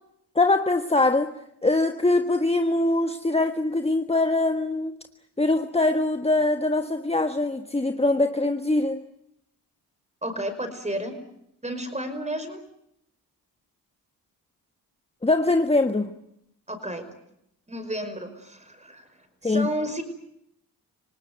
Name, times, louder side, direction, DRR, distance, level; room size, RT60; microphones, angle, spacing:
voice 1, 0.3-5.0 5.4-9.1 15.2-16.1 19.4-19.7, left 2 dB, 15° left, 7 dB, 1.4 m, -23 dB
voice 2, 10.2-11.2 11.6-12.6 16.7-17.0 17.7-20.0, right 1 dB, 15° right, 9 dB, 5.4 m, -32 dB
27.0 x 18.0 x 9.5 m, 0.79 s
cardioid pair, 65°, 41 cm